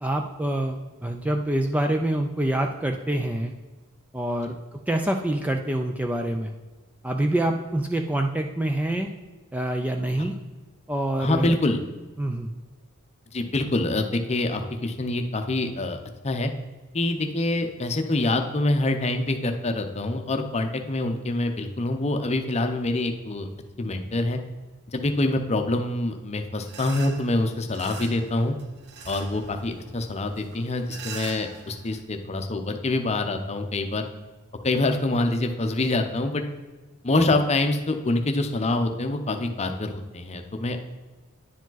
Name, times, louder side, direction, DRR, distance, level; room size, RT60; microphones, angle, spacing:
voice 1, 0.0-3.5 4.1-4.6 4.9-6.5 7.0-9.1 9.5-10.4 10.9-11.5 12.2-12.5, right 1 dB, 5° right, 3 dB, 0.3 m, -26 dB
voice 2, 11.2-11.8 13.3-16.0 16.2-16.5 16.9-23.5 23.8-24.4 24.9-28.5 29.1-34.0 34.6-36.4 37.0-40.8, left 2 dB, 30° left, 6 dB, 0.7 m, -25 dB
sound 1, 26.6-32.0, right 5 dB, 50° right, 0.8 m, -43 dB
10.0 x 5.0 x 3.9 m, 1.2 s
head